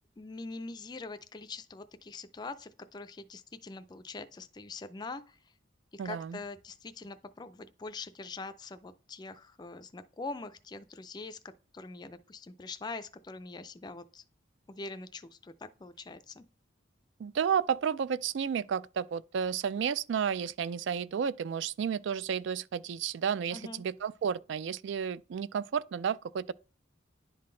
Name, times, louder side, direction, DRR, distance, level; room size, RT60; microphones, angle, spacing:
voice 1, 0.2-5.4 5.9-11.4 11.7-14.2 14.7-16.4 23.5-23.8, left 3 dB, 20° left, 0.4 m, -43 dB
voice 2, 6.0-6.4 17.2-26.5, right 7 dB, 65° right, 0.3 m, -32 dB
10.5 x 3.8 x 3.8 m
head